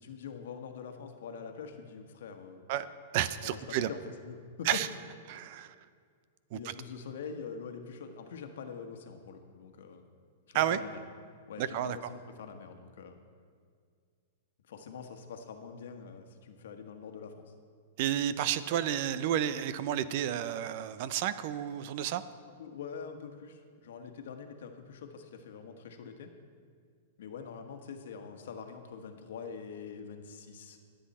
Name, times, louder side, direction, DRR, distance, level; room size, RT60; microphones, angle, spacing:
voice 1, 0.0-2.7 3.4-4.8 6.5-10.0 10.5-11.0 11.5-13.2 14.7-17.5 22.6-26.3 27.2-30.8, left 6 dB, 75° left, 6 dB, 1.4 m, -44 dB
voice 2, 3.1-3.9 4.7-4.9 5.3-5.7 6.5-6.6 10.5-10.8 11.6-12.0 18.0-22.2, right 11 dB, 55° right, 14 dB, 0.6 m, -31 dB
22.5 x 7.9 x 4.3 m, 2.1 s
hypercardioid pair, 135°, 0 cm